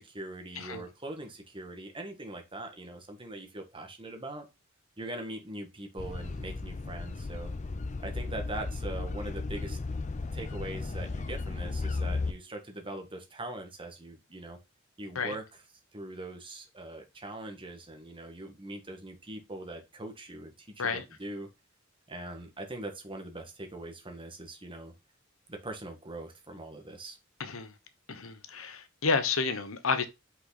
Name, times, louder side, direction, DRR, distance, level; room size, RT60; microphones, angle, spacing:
voice 1, 0.0-4.4 5.0-7.5 8.0-9.8 10.3-14.6 15.0-15.4 15.9-21.5 22.1-24.9 25.5-27.2, right 1 dB, 25° right, 1.7 m, -42 dB
sound 1, 6.0-12.3, left 3 dB, 35° left, 0.5 m, -35 dB
voice 2, 27.4-27.7 28.1-30.1, left 4 dB, 90° left, 1.1 m, -30 dB
5.8 x 5.7 x 4.1 m
head